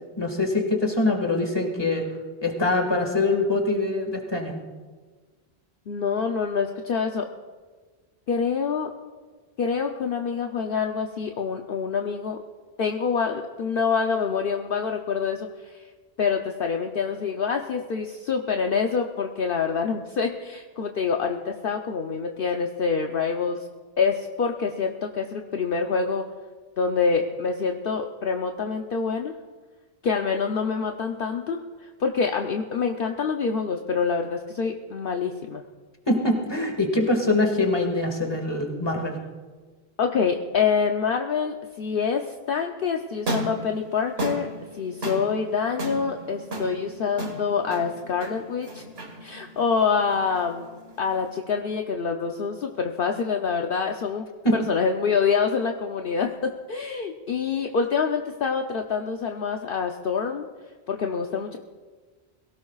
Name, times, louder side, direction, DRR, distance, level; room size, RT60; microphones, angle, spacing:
voice 1, 0.2-2.0 2.4-4.6 36.1-39.1 54.4-54.6, left 2 dB, 25° left, 2 dB, 1.9 m, -23 dB
voice 2, 5.9-7.3 8.3-8.9 9.6-12.4 12.8-15.8 16.2-23.6 24.0-26.3 26.8-29.3 30.0-35.6 40.0-44.5 44.7-48.8 49.2-50.7 51.0-54.3 54.5-56.3 56.7-60.5 60.9-61.6, left 5 dB, 60° left, 3 dB, 0.9 m, -26 dB
sound 1, 43.1-51.4, right 1 dB, 70° right, 2.0 m, -35 dB
22.5 x 17.0 x 2.4 m, 1.4 s
omnidirectional pair, 1.1 m